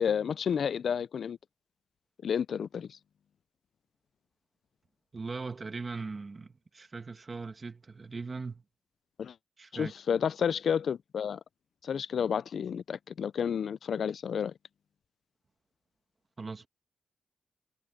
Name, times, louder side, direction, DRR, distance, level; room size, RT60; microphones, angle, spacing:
voice 1, 0.0-1.4 2.2-3.0 9.2-9.3 9.7-11.4 11.8-14.5, left 7 dB, 70° left, 0.4 m, -31 dB
voice 2, 5.1-8.6 9.6-9.9 16.4-16.7, right 4 dB, 35° right, 1.7 m, -39 dB
cardioid pair, 90°, 0 cm